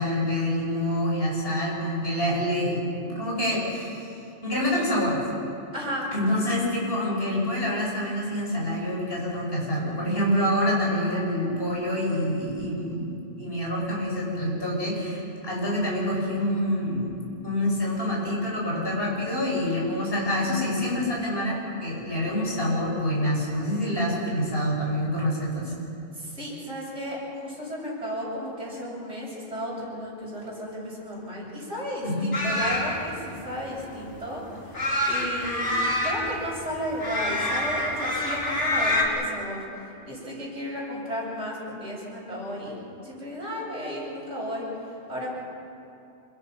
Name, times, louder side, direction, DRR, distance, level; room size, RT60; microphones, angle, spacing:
voice 1, 0.0-4.1 4.4-5.2 6.1-25.7 32.0-32.4, left 1 dB, 50° left, -4 dB, 6.4 m, -27 dB
voice 2, 5.7-6.1 26.2-34.4 35.1-39.6 40.1-42.8 43.0-44.6 45.1-45.3, equal, 65° right, -7 dB, 8.0 m, -34 dB
sound 1, 32.3-39.0, left 1 dB, 70° left, 3.3 m, -27 dB
27.0 x 23.5 x 5.9 m, 2.7 s
omnidirectional pair, 1.2 m